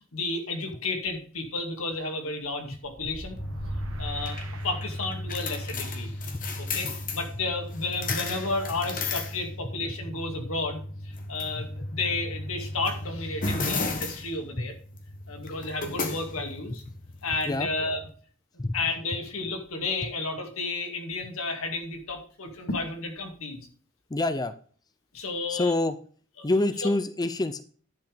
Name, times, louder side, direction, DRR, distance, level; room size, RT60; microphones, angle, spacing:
voice 1, 0.1-3.4 4.0-4.4 4.6-6.2 6.6-14.7 15.3-16.8 17.2-18.0 18.7-23.6 25.1-25.7 26.4-26.5, left 3 dB, 85° left, 4 dB, 2.2 m, -32 dB
sound 1, 2.9-5.5, right 1 dB, 75° right, 1.5 m, -40 dB
sound 2, 3.4-18.1, left 2 dB, 40° left, 1.5 m, -35 dB
voice 2, 24.1-24.5 25.5-25.9 26.4-27.6, left 2 dB, 20° left, 12 dB, 0.5 m, -27 dB
10.5 x 5.1 x 5.1 m, 0.43 s
head